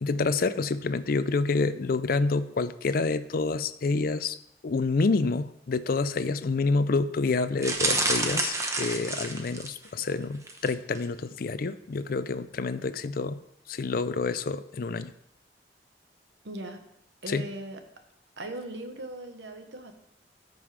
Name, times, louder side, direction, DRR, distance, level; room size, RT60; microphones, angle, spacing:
voice 1, 0.0-4.3 4.6-13.4 13.7-15.1 17.3-17.4, left 3 dB, 55° left, 13 dB, 0.5 m, -28 dB
sound 1, 7.6-9.9 10.4-10.7 11.0-11.1, right 2 dB, 15° right, 0.9 m, -28 dB
voice 2, 16.4-16.8 17.2-17.8 18.4-20.0, right 1 dB, 80° right, 6 dB, 1.1 m, -39 dB
13.5 x 5.4 x 3.3 m, 0.74 s
head